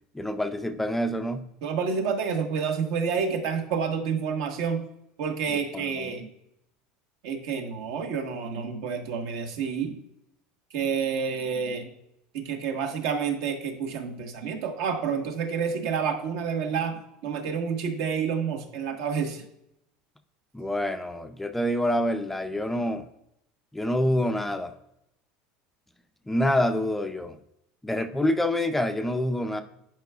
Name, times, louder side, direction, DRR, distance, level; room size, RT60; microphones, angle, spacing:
voice 1, 0.1-1.5 5.5-6.1 20.5-23.0 23.7-24.7 26.3-27.4 27.8-29.6, left 1 dB, 5° left, 8 dB, 0.3 m, -27 dB
voice 2, 1.6-4.8 5.2-6.3 7.2-9.9 10.7-11.9 12.3-19.4, right 6 dB, 70° right, 5 dB, 1.2 m, -29 dB
11.0 x 4.6 x 2.3 m, 0.80 s
supercardioid pair, 145°, 3 cm